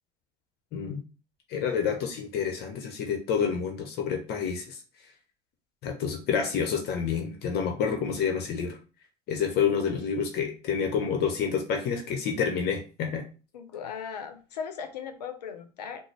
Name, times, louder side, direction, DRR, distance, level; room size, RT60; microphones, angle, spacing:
voice 1, 0.7-1.0 1.5-4.8 5.8-8.8 9.3-13.2, left 6 dB, 55° left, 3 dB, 0.7 m, -28 dB
voice 2, 13.5-16.1, left 7 dB, 90° left, 8 dB, 0.6 m, -38 dB
3.8 x 2.0 x 3.2 m, 0.35 s
hypercardioid pair, 80°, 20 cm